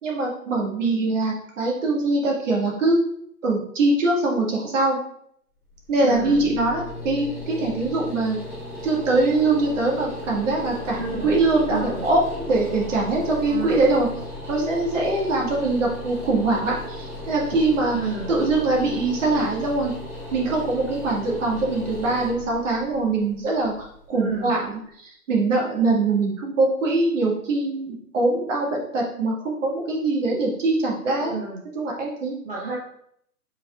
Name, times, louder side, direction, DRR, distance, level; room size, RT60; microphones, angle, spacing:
voice 1, 0.0-3.0 3.4-5.0 5.9-8.4 8.8-14.1 14.5-18.0 18.3-19.9 20.3-31.4 31.8-32.3, right 2 dB, 50° right, -2 dB, 1.7 m, -23 dB
sound 1, 5.7-24.6, left 1 dB, 5° right, 1.2 m, -36 dB
voice 2, 6.0-6.4 10.9-11.4 11.7-12.1 13.5-13.9 17.9-18.3 24.1-24.5 31.3-31.6 32.4-32.8, right 4 dB, 35° right, -5 dB, 0.9 m, -30 dB
5.0 x 4.3 x 2.3 m, 0.69 s
figure-of-eight pair, 130°, 46 cm